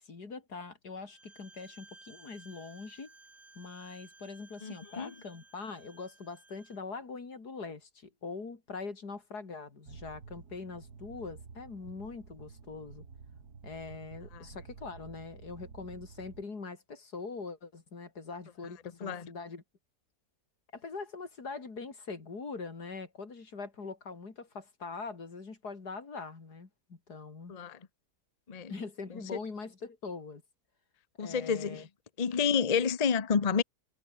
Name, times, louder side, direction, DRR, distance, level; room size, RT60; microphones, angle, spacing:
voice 1, 0.0-3.1 3.6-13.0 13.6-19.6 20.7-27.5 28.7-30.4 31.2-31.9, left 4 dB, 80° left, 3.7 m, -43 dB
Bowed string instrument, 1.1-6.8, right 2 dB, 55° right, 4.7 m, -57 dB
voice 2, 4.6-5.1 14.3-14.5 19.0-19.3 27.5-27.8 28.5-28.8 29.1-29.4 31.2-31.9 32.2-33.6, left 6 dB, 30° left, 0.9 m, -30 dB
sound 1, 9.8-16.4, right 5 dB, 75° right, 3.0 m, -50 dB
omnidirectional pair, 1.7 m